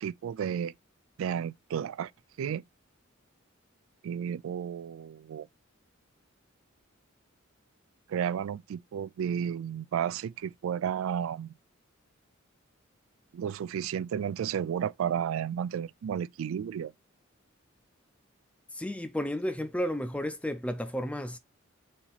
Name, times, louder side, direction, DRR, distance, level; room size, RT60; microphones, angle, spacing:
voice 1, 0.0-0.7 1.2-2.1 2.4-2.6 4.0-5.5 8.1-11.5 13.3-16.9, right 8 dB, 70° right, 0.3 m, -32 dB
voice 2, 18.7-21.4, left 1 dB, 5° left, 0.6 m, -32 dB
4.3 x 2.9 x 4.0 m
head